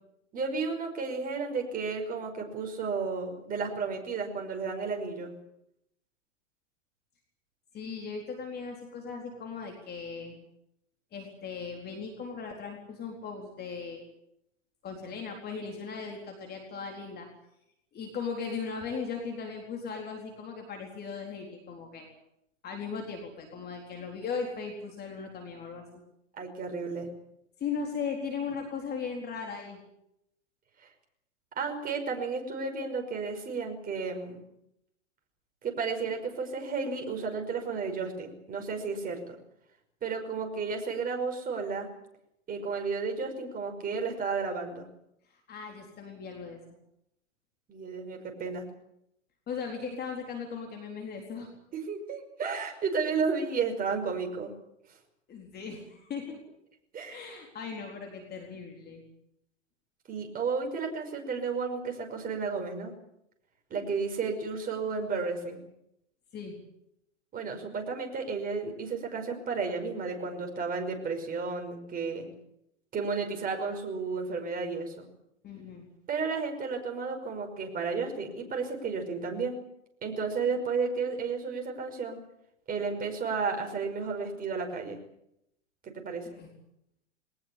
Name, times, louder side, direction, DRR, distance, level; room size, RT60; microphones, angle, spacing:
voice 1, 0.3-5.3 26.3-27.1 30.8-30.9 31.6-34.4 35.6-39.2 40.0-41.9 42.5-44.9 47.7-48.7 51.7-54.5 56.9-57.2 60.1-62.9 63.7-65.6 67.3-72.3 72.9-75.1 76.1-79.6 80.0-82.2 82.7-85.0 85.8-86.3, right 4 dB, 20° right, 3 dB, 5.6 m, -32 dB
voice 2, 7.7-10.4 11.1-14.1 14.8-17.3 17.9-22.1 22.6-25.8 27.6-29.8 45.5-46.6 49.5-51.5 55.3-56.4 57.1-59.0 66.3-66.6 75.4-75.9 86.3-86.5, left 5 dB, 25° left, 2 dB, 4.1 m, -38 dB
21.5 x 19.5 x 8.6 m, 0.79 s
hypercardioid pair, 125°, 38 cm